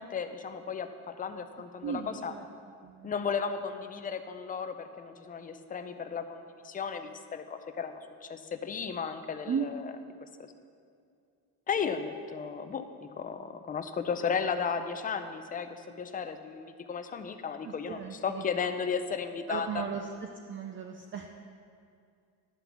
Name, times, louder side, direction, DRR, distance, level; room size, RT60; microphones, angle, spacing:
voice 1, 0.0-2.3 3.0-9.7 11.7-19.8, left 6 dB, 25° left, 8 dB, 0.5 m, -34 dB
voice 2, 1.8-2.4 2.8-3.1 9.5-9.7 17.6-18.6 19.5-20.1 20.4-21.3, right 7 dB, 35° right, 3 dB, 0.5 m, -36 dB
11.0 x 3.8 x 6.9 m, 2.4 s
cardioid pair, 125°, 35 cm